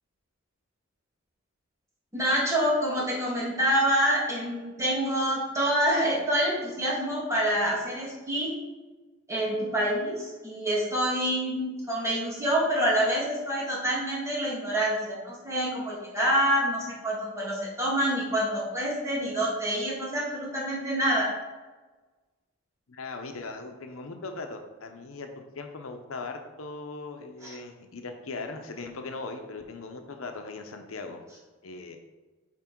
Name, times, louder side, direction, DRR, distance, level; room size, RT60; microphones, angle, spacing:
voice 1, 2.1-8.5 9.3-21.3 27.4-27.6, equal, 15° right, -5 dB, 1.8 m, -27 dB
voice 2, 22.9-31.2 31.6-32.0, left 3 dB, 90° left, 5 dB, 0.7 m, -39 dB
5.9 x 4.5 x 4.5 m, 1.3 s
head